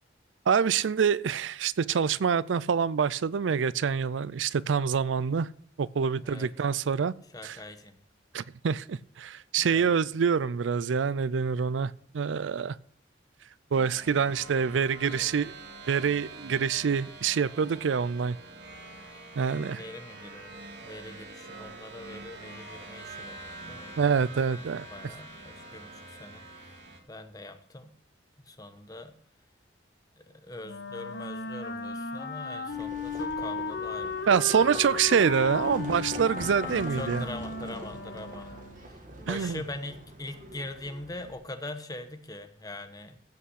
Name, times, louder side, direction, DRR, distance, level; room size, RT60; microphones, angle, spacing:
voice 1, 0.5-5.5 5.8-7.1 7.4-7.6 8.3-12.8 13.7-15.5 15.9-18.4 19.4-19.8 24.0-24.9 34.3-37.2 39.3-39.6, right 6 dB, 85° right, 0.4 m, -26 dB
voice 2, 7.3-8.0 9.6-10.0 15.1-15.3 19.7-24.0 24.5-27.9 28.4-29.2 30.2-34.2 34.7-34.8 36.7-38.5 38.8-43.2, left 2 dB, 20° left, 1.1 m, -43 dB
sound 1, 13.7-27.0, right 2 dB, 60° right, 2.2 m, -45 dB
Wind instrument woodwind instrument, 30.6-38.9, left 3 dB, 65° left, 1.7 m, -35 dB
Livestock farm animals working animals, 32.7-41.3, right 1 dB, 45° right, 2.1 m, -44 dB
15.5 x 5.8 x 6.4 m
head